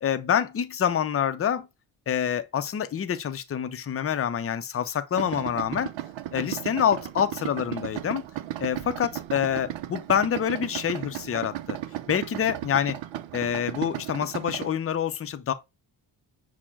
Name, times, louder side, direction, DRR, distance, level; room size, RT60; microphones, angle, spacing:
voice 1, 0.0-1.7 2.1-5.9 6.3-8.2 8.6-11.8 12.1-13.0 13.3-15.5, left 8 dB, 30° left, 0.5 m, -26 dB
Idling, 5.1-14.7, right 13 dB, 80° right, 0.6 m, -35 dB
6.0 x 2.1 x 3.6 m
cardioid pair, 90°, 45 cm